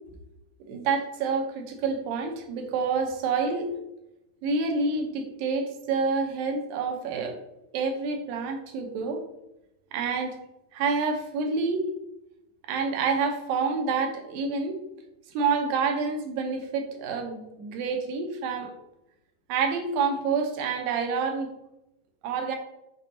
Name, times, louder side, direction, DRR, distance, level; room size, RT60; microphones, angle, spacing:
voice 1, 0.6-3.7 4.4-7.4 7.7-9.2 9.9-10.4 10.7-11.9 12.7-14.8 15.3-18.7 19.5-21.5 22.2-22.6, right 4 dB, 85° right, 4 dB, 2.6 m, -28 dB
7.0 x 5.2 x 2.7 m, 0.89 s
omnidirectional pair, 4.0 m